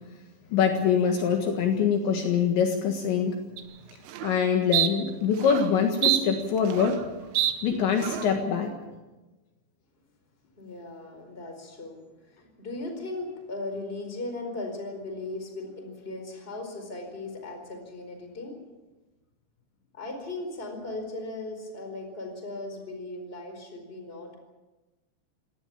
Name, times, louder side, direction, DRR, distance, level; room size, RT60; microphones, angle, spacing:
voice 1, 0.5-3.4 4.2-7.0 7.6-8.7, left 7 dB, 65° left, 3 dB, 3.7 m, -24 dB
sound 1, 3.6-3.7 4.1-4.3 4.7-4.9 5.4-5.7 6.0-7.1 7.4-7.5 8.0-8.3, right 12 dB, 85° right, 4.0 m, -26 dB
voice 2, 10.6-18.6 19.9-24.4, left 2 dB, 10° left, 4 dB, 4.1 m, -37 dB
24.5 x 18.5 x 7.3 m, 1.1 s
omnidirectional pair, 6.0 m